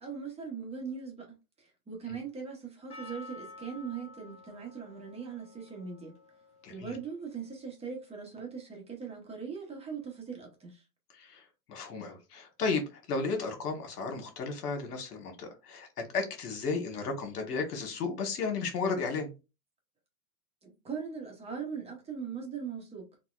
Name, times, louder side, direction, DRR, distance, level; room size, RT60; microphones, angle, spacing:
voice 1, 0.0-6.1 6.7-10.8 20.6-23.1, right 6 dB, 15° right, 0.8 m, -40 dB
Percussion, 2.9-7.9, left 3 dB, 15° left, 0.6 m, -51 dB
voice 2, 6.6-7.0 11.1-11.4 11.7-19.3, left 4 dB, 80° left, 1.2 m, -34 dB
4.0 x 2.2 x 2.3 m
hypercardioid pair, 115°, 46 cm